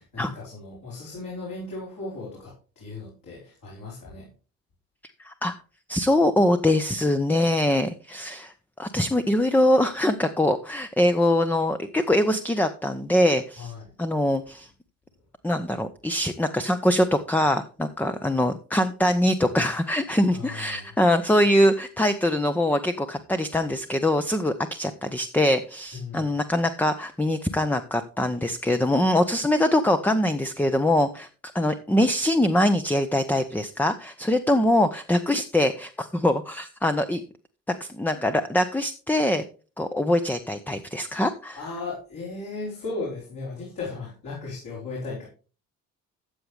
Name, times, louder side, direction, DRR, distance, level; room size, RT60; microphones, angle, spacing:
voice 1, 0.0-4.3 13.6-13.8 20.3-20.9 25.9-26.3 41.6-45.3, left 3 dB, 55° left, -4 dB, 4.6 m, -36 dB
voice 2, 5.2-5.5 5.9-13.7 14.0-14.7 15.4-31.3 31.5-37.2 37.8-39.5 39.8-41.6, left 1 dB, 5° left, 9 dB, 0.8 m, -23 dB
13.5 x 8.1 x 3.4 m, 0.36 s
figure-of-eight pair, 45°, 41 cm